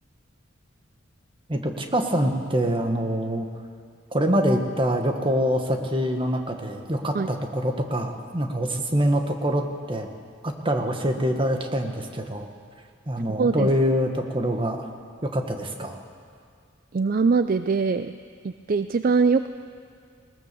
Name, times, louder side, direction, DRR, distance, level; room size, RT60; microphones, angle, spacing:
voice 1, 1.5-3.5 4.1-10.1 10.4-12.5 13.1-14.9 15.2-16.0, equal, 25° right, 4 dB, 1.6 m, -25 dB
voice 2, 13.4-13.7 16.9-18.2 18.4-19.5, right 4 dB, 45° right, 11 dB, 0.4 m, -22 dB
20.0 x 19.5 x 7.0 m, 2.2 s
head